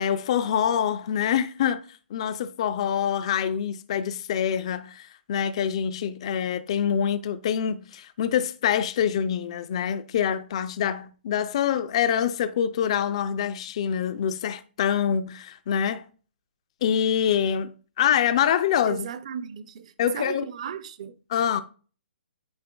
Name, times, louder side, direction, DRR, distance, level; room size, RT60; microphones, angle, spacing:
voice 1, 0.0-1.8 2.1-16.0 16.8-19.1 20.0-20.4 21.3-21.6, left 8 dB, 30° left, 0.3 m, -25 dB
voice 2, 18.9-21.2, right 8 dB, 35° right, 0.5 m, -36 dB
8.6 x 5.3 x 2.2 m
hypercardioid pair, 175°, 6 cm